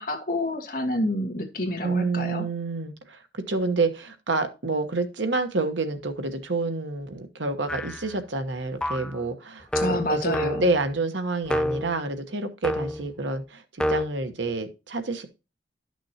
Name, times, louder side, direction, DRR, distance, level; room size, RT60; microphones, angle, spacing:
voice 1, 0.0-2.5 9.7-10.7, left 1 dB, 50° left, 1.6 m, -28 dB
voice 2, 1.8-15.3, right 3 dB, 90° right, 1.1 m, -28 dB
sound 1, 7.7-8.2 8.8-9.2 9.7-10.9 11.5-12.0 12.6-13.1 13.8-14.1, left 1 dB, 5° left, 0.3 m, -28 dB
12.0 x 6.2 x 2.8 m
head